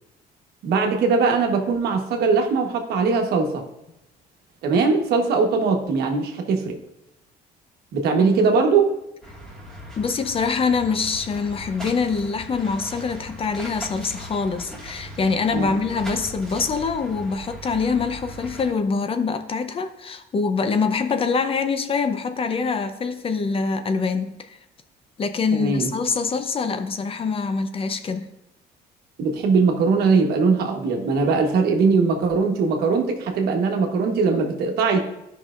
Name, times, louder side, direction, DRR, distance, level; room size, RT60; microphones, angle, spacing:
voice 1, 0.6-3.6 4.6-6.8 7.9-8.9 15.5-15.7 25.5-25.9 29.2-35.1, right 4 dB, 70° right, 3 dB, 1.1 m, -20 dB
voice 2, 8.2-8.6 10.0-24.5 25.2-28.3, left 5 dB, 35° left, 9 dB, 0.6 m, -24 dB
sound 1, 9.2-18.7, equal, 5° left, 1.7 m, -39 dB
12.5 x 5.5 x 2.4 m, 0.89 s
cardioid pair, 110°, 17 cm